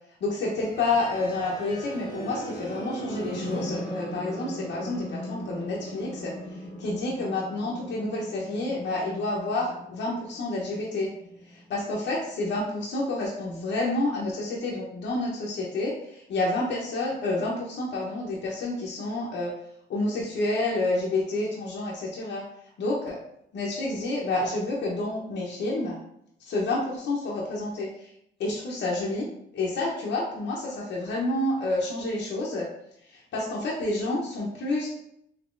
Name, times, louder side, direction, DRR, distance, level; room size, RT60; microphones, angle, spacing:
voice 1, 0.2-11.1 11.5-19.5 19.9-22.4 22.8-23.2 23.5-26.0 26.4-28.1 28.4-29.3 29.5-32.7 33.3-34.9, left 2 dB, 65° left, -4 dB, 0.8 m, -29 dB
sound 1, 0.6-12.5, equal, 20° left, 1.1 m, -38 dB
3.7 x 2.8 x 2.5 m, 0.74 s
cardioid pair, 90°, 20 cm